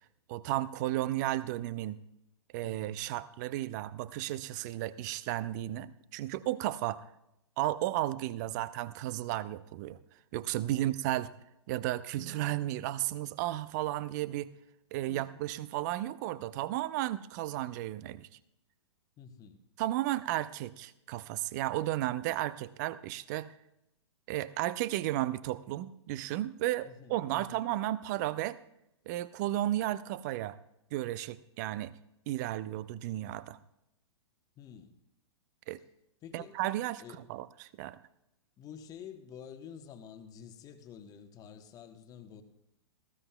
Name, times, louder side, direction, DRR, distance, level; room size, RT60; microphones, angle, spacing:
voice 1, 0.3-2.0 2.5-7.0 7.6-10.0 10.3-11.3 11.7-14.5 14.9-18.3 19.8-23.5 24.3-28.6 29.1-30.6 30.9-31.9 32.3-33.6 35.7-35.8 36.3-37.0 37.3-38.0, right 14 dB, 40° right, 17 dB, 0.6 m, -33 dB
voice 2, 2.6-3.0 10.7-11.0 15.1-15.3 19.2-19.6 26.8-27.6 34.6-35.0 36.2-36.6 37.0-37.2 38.6-42.4, left 8 dB, 25° left, 7 dB, 1.1 m, -49 dB
Guitar, 14.7-14.8, right 6 dB, 60° right, 1.5 m, -55 dB
18.5 x 15.5 x 2.3 m, 0.84 s
figure-of-eight pair, 110°, 15 cm